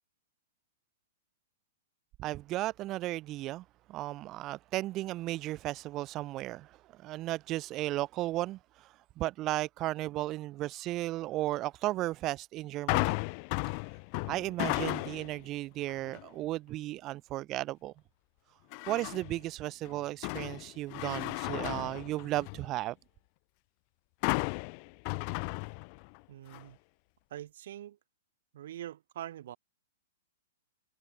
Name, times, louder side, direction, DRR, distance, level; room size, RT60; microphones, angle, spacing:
voice 1, 2.2-13.2 14.3-17.9 18.9-22.9, right 16 dB, 30° right, 1.4 m, -35 dB
sound 1, 12.9-15.4 15.9-16.3 18.7-19.4 19.9-22.7 24.2-26.2 26.5-26.6, left 40 dB or more, 45° left, 1.7 m, -34 dB
voice 2, 26.3-26.8 27.3-28.0 28.5-29.6, right 12 dB, 65° right, 5.6 m, -43 dB
hypercardioid pair, 125°, 0 cm